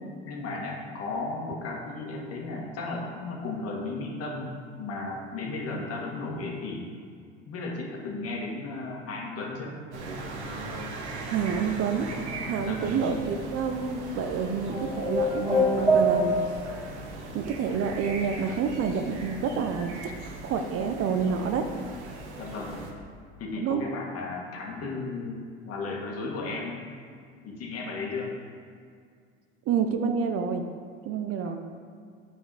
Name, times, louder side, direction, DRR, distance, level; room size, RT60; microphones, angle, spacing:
voice 1, 0.3-6.9 7.5-9.8 12.6-13.1 22.4-22.8 23.4-26.8 27.4-28.4 31.4-31.6, left 3 dB, 45° left, -1 dB, 1.7 m, -35 dB
sound 1, 9.9-22.9, right 2 dB, 85° right, 1.0 m, -39 dB
voice 2, 11.3-12.1 12.4-16.4 17.3-20.1 20.4-21.6 23.6-23.8 29.7-30.6 31.0-31.6, right 6 dB, 45° right, 7 dB, 0.7 m, -28 dB
sound 2, 14.7-16.8, equal, 5° right, 1.9 m, -24 dB
7.7 x 5.2 x 4.9 m, 2.2 s
hypercardioid pair, 75°, 33 cm